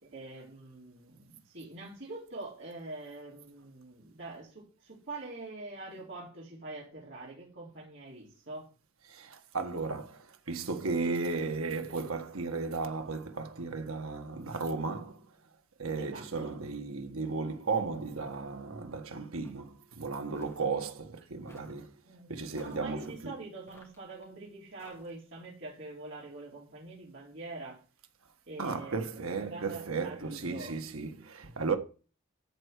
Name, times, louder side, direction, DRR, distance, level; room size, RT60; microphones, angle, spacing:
voice 1, 0.0-8.7 16.0-16.5 22.0-27.8 28.5-30.8, right 2 dB, 55° right, 3.6 m, -45 dB
voice 2, 9.1-15.3 15.8-21.9 22.3-23.3 28.6-31.8, right 4 dB, 85° right, 1.4 m, -35 dB
sound 1, 19.4-19.8 20.4-20.7 21.5-21.8 22.5-22.9 23.7-24.2 24.8-25.3, left 1 dB, 15° left, 2.4 m, -58 dB
13.0 x 4.6 x 8.1 m
head